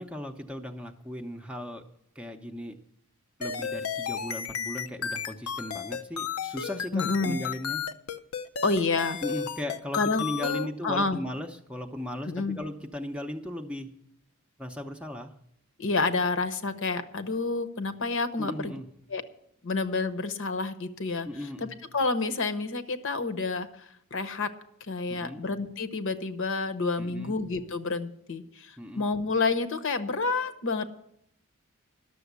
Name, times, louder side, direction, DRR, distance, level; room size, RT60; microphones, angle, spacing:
voice 1, 0.0-1.9 2.2-2.8 3.4-7.8 9.2-13.9 14.6-15.3 18.4-18.9 21.2-21.7 25.1-25.4 27.0-27.4 28.8-29.1, left 1 dB, 5° right, 4 dB, 0.7 m, -37 dB
sound 1, 3.4-10.7, left 7 dB, 90° left, 0.7 m, -33 dB
voice 2, 6.9-7.4 8.6-9.2 9.9-11.2 12.3-12.6 15.8-18.8 19.1-19.2 19.6-21.3 21.6-24.5 24.9-30.9, left 3 dB, 60° left, 10 dB, 0.9 m, -29 dB
12.0 x 7.0 x 8.1 m, 0.73 s
head